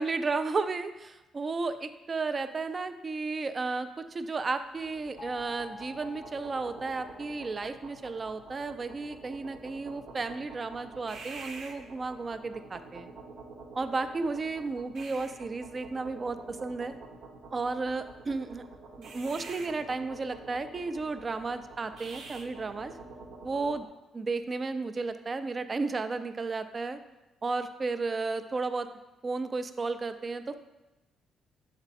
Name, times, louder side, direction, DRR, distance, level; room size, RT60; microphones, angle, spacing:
voice 1, 0.0-13.1 13.7-17.0 17.5-18.6 19.0-22.9 23.4-23.9 24.1-27.0 27.4-28.9 29.2-30.6, right 3 dB, 35° right, 10 dB, 0.5 m, -33 dB
sound 1, 4.6-23.9, right 3 dB, 80° right, 0.9 m, -47 dB
sound 2, 5.2-9.9, left 4 dB, 45° left, 0.5 m, -50 dB
7.1 x 4.3 x 4.1 m, 1.0 s
cardioid pair, 90°, 0 cm